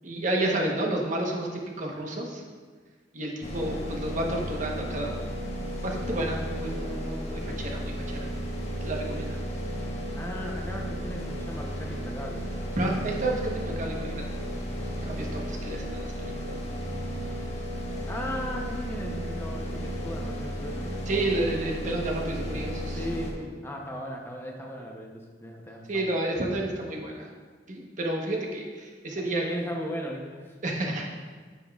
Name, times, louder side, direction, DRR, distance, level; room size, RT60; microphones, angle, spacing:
voice 1, 0.0-2.4 3.1-5.3 5.8-8.3 8.8-9.4 12.8-14.2 15.0-16.3 21.1-23.0 25.9-27.3 27.7-29.4 30.6-31.1, right 1 dB, 45° right, 0 dB, 1.0 m, -30 dB
sound 1, 3.4-23.3, equal, 40° left, 1.1 m, -34 dB
voice 2, 10.1-12.4 15.5-15.7 18.1-21.5 22.9-26.1 29.1-30.6, equal, 15° left, 0 dB, 0.7 m, -37 dB
9.0 x 6.8 x 2.3 m, 1.5 s
head